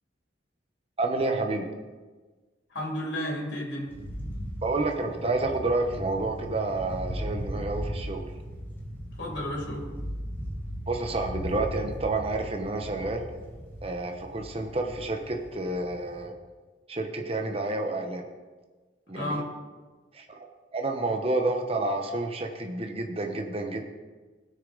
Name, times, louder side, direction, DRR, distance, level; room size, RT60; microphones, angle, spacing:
voice 1, 1.0-1.7 4.6-8.3 10.9-13.2 13.8-16.3 16.9-18.2 19.1-19.4 20.1-23.8, right 2 dB, 30° right, 3 dB, 1.0 m, -29 dB
voice 2, 2.7-3.9 9.2-9.9 19.1-19.5, left 1 dB, 75° left, -2 dB, 2.8 m, -32 dB
sound 1, 3.9-16.3, equal, 10° left, 1.5 m, -37 dB
18.0 x 6.6 x 3.9 m, 1.3 s
head